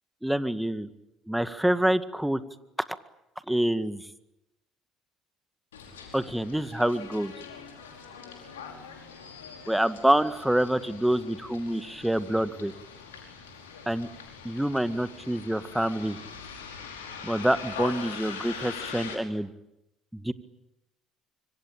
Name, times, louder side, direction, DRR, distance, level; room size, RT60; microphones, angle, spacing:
voice 1, 0.2-0.9 1.3-2.4 3.5-4.0 6.1-7.3 9.7-12.7 13.9-14.1 14.4-16.2 17.2-19.5 20.1-20.3, right 1 dB, 5° right, 12 dB, 1.9 m, -26 dB
Bus, 5.7-19.1, left 6 dB, 90° left, 5.0 m, -42 dB
25.5 x 25.0 x 8.9 m, 0.88 s
hypercardioid pair, 60°, 0 cm